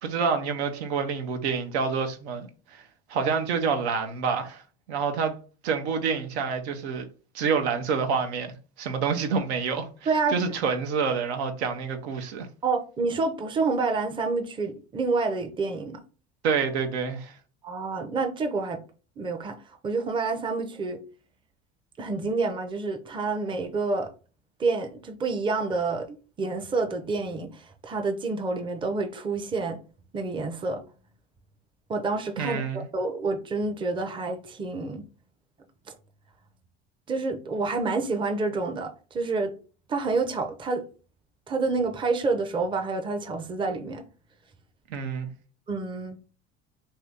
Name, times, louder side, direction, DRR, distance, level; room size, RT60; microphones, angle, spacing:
voice 1, 0.0-2.8 3.1-4.6 4.9-5.4 5.6-7.1 7.3-12.5 16.4-17.4 32.4-32.9 44.9-45.3, right 5 dB, 85° right, 0.7 m, -28 dB
voice 2, 12.6-16.0 17.6-18.8 19.2-19.6 19.8-21.0 22.0-24.1 24.6-29.8 30.1-30.8 31.9-35.0 37.1-39.5 39.9-40.9 41.5-44.0 45.7-46.2, right 3 dB, 15° right, 0.5 m, -28 dB
2.7 x 2.7 x 3.5 m
supercardioid pair, 100°, 32 cm